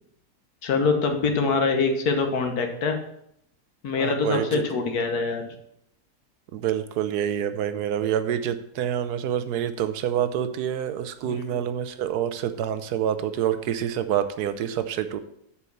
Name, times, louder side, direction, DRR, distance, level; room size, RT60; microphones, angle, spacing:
voice 1, 0.6-3.0 3.8-5.4 11.2-11.6, left 4 dB, 70° left, 5 dB, 1.6 m, -24 dB
voice 2, 4.0-4.6 6.5-15.2, right 9 dB, 80° right, 11 dB, 1.2 m, -27 dB
7.0 x 4.6 x 7.0 m, 0.73 s
omnidirectional pair, 1.7 m